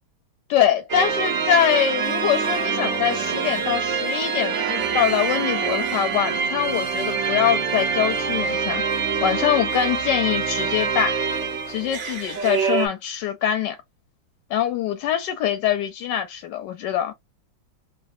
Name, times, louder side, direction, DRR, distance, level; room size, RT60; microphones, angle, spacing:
voice 1, 0.5-8.8 9.2-11.2 11.7-13.8 14.5-17.1, left 10 dB, 75° left, 1.1 m, -23 dB
sound 1, 0.9-12.9, right 6 dB, 75° right, 0.6 m, -25 dB
3.3 x 2.1 x 2.5 m
omnidirectional pair, 2.2 m